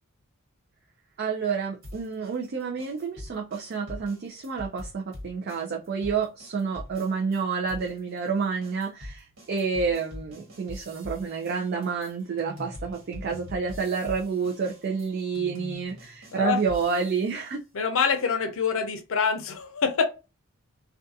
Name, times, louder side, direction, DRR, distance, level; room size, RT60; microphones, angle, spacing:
voice 1, 1.2-17.6, right 5 dB, 45° right, 0.4 m, -29 dB
sound 1, 1.8-7.4 7.7-17.4, left 1 dB, 80° right, 1.3 m, -43 dB
voice 2, 17.7-20.1, left 6 dB, 65° left, 0.6 m, -25 dB
2.4 x 2.3 x 2.6 m
head